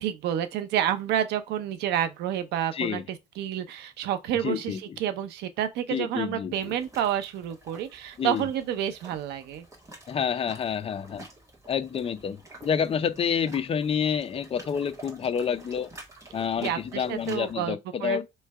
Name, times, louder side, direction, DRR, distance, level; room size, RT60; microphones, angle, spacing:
voice 1, 0.0-9.7 16.6-18.2, right 10 dB, 85° right, 0.7 m, -29 dB
voice 2, 2.7-3.0 4.4-5.0 5.9-6.7 8.2-8.5 10.1-11.2 11.7-15.9 16.3-18.2, left 7 dB, 35° left, 0.5 m, -28 dB
sound 1, 6.5-17.5, right 2 dB, 20° right, 1.8 m, -49 dB
3.3 x 3.2 x 4.6 m
cardioid pair, 110°, 17 cm